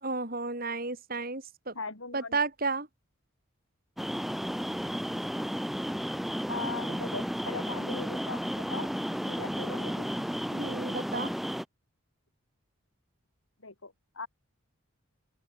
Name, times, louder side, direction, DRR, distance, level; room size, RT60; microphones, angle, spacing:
voice 1, 0.0-1.7 2.1-2.9 10.5-11.3, right 3 dB, 45° right, 3.6 m, -32 dB
voice 2, 1.7-2.4 6.5-8.9 9.3-10.1 13.6-14.3, left 3 dB, 70° left, 3.7 m, -39 dB
sound 1, 4.0-11.6, equal, ahead, 6.5 m, -33 dB
open air
head